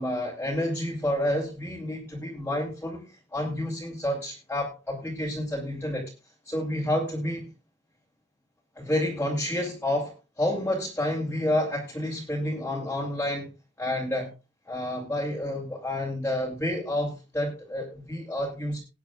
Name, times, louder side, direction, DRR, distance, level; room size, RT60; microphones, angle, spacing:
voice 1, 0.0-6.1 6.5-7.5 8.8-13.5 13.8-14.3 14.7-18.8, left 1 dB, 10° left, -3 dB, 2.7 m, -29 dB
20.0 x 9.3 x 2.3 m, 0.29 s
head